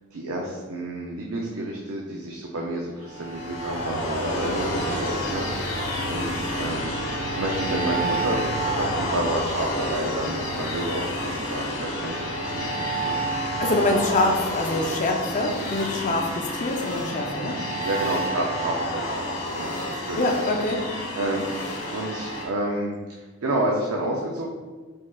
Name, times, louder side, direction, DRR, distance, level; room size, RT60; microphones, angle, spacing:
voice 1, 0.1-13.6 14.7-14.8 17.8-19.2 19.5-20.3 21.2-21.5 21.9-24.5, right 1 dB, 75° right, -1 dB, 0.5 m, -30 dB
sound 1, 3.0-22.4, equal, 80° left, 1.0 m, -29 dB
voice 2, 13.6-17.6 19.9-20.8, left 2 dB, 35° left, 1 dB, 0.5 m, -25 dB
4.5 x 4.3 x 2.3 m, 1.4 s
head